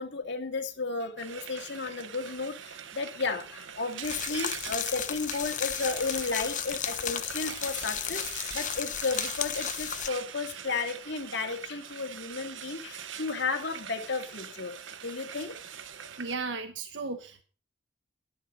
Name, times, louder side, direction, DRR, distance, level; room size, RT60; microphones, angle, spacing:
voice 1, 0.0-14.7 15.0-15.6, left 4 dB, 65° left, 5 dB, 2.1 m, -33 dB
Frying (food), 1.2-16.3, right 8 dB, 90° right, 1.0 m, -43 dB
sound 1, 4.0-10.1, left 9 dB, 45° left, 1.0 m, -34 dB
voice 2, 16.2-17.4, right 4 dB, 70° right, 6 dB, 1.2 m, -35 dB
11.5 x 10.5 x 5.1 m, 0.38 s
head